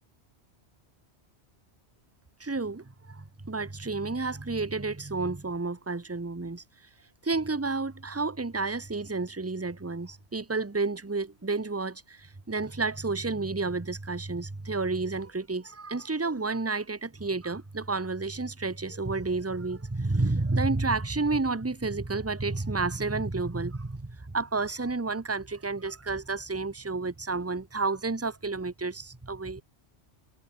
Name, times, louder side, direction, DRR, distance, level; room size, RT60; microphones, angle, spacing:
voice 1, 2.4-6.6 7.2-29.6, right 3 dB, 15° right, 1.0 m, -31 dB
omnidirectional pair, 1.2 m